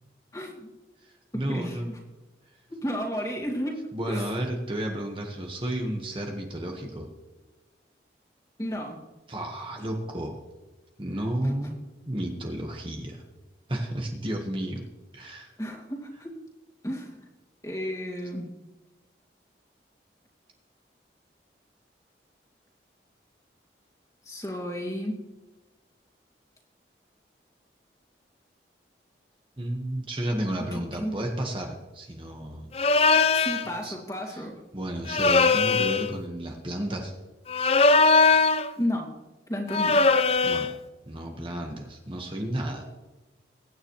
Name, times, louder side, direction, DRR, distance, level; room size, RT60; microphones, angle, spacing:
voice 1, 0.3-0.7 1.5-1.8 2.7-4.2 8.6-9.0 11.4-11.5 15.6-16.3 16.8-17.2 17.6-18.5 24.3-25.1 30.7-31.2 33.1-34.6 38.8-39.2 39.5-40.0, equal, 20° left, -1 dB, 2.4 m, -33 dB
voice 2, 1.0-2.0 3.9-7.1 9.3-10.4 11.0-11.8 12.1-13.3 13.7-14.8 15.1-15.5 29.6-33.2 33.5-34.0 34.2-34.4 34.7-37.1 40.4-40.7 41.0-42.8, right 1 dB, 30° right, 1 dB, 1.5 m, -32 dB
sound 1, 32.7-33.7 35.1-36.1 37.5-38.7 39.7-40.7, left 4 dB, 35° left, 0.5 m, -20 dB
22.5 x 10.0 x 3.2 m, 1.1 s
head